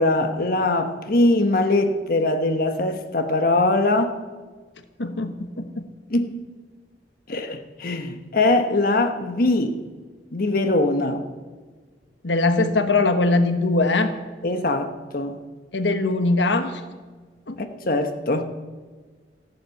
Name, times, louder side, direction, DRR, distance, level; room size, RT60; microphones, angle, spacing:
voice 1, 0.0-4.2 6.1-6.5 7.3-9.8 10.3-11.2 14.4-15.4 17.6-18.4, left 2 dB, 55° left, 7 dB, 1.2 m, -22 dB
voice 2, 5.0-5.8 12.2-14.1 15.7-16.8 17.5-17.6, left 2 dB, 80° left, 9 dB, 1.3 m, -21 dB
15.0 x 11.5 x 8.2 m, 1.4 s
head